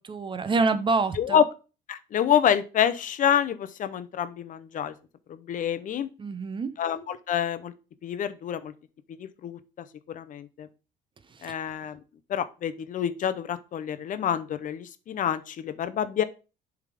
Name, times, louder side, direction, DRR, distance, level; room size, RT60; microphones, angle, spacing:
voice 1, 0.0-1.4 6.2-6.7 11.3-11.5, right 3 dB, 30° right, 12 dB, 0.7 m, -27 dB
voice 2, 1.9-4.9 5.3-6.1 6.8-7.7 8.0-8.7 9.2-9.6 10.1-10.7 11.4-12.0 12.3-16.2, left 9 dB, 50° left, 12 dB, 0.7 m, -27 dB
7.5 x 3.6 x 4.9 m, 0.32 s
cardioid pair, 110°, 17 cm